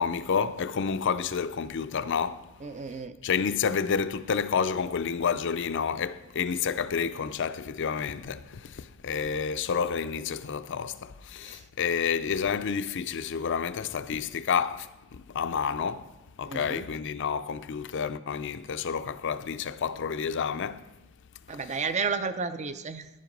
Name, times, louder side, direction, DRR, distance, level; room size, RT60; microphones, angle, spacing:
voice 1, 0.0-2.5 3.2-16.1 16.4-20.9 21.5-21.6, left 6 dB, 55° left, 0.5 m, -29 dB
voice 2, 2.6-3.2 11.4-11.6 16.4-16.9 21.5-23.1, right 5 dB, 30° right, 0.5 m, -32 dB
11.0 x 7.6 x 5.2 m
head